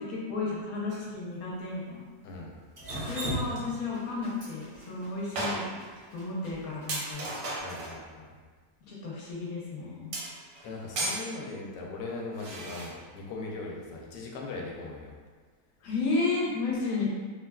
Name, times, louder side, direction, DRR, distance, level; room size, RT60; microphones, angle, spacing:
voice 1, 0.0-2.0 3.1-5.7 6.1-7.3 8.9-10.1 15.8-17.1, left 3 dB, 65° left, -5 dB, 1.1 m, -32 dB
sound 1, 0.9-1.1 3.1-3.2 3.4-3.7 4.3-4.4 4.8-4.9 5.4-6.0 6.4-6.5 6.9-8.0 10.1-11.3 12.3-12.9, right 2 dB, 85° right, 1.3 m, -35 dB
Drip, 2.8-6.9, right 1 dB, 50° right, 0.5 m, -37 dB
voice 2, 7.5-8.3 10.6-15.1, left 3 dB, 85° left, -1 dB, 1.2 m, -39 dB
3.2 x 2.3 x 2.2 m, 1.5 s
omnidirectional pair, 1.8 m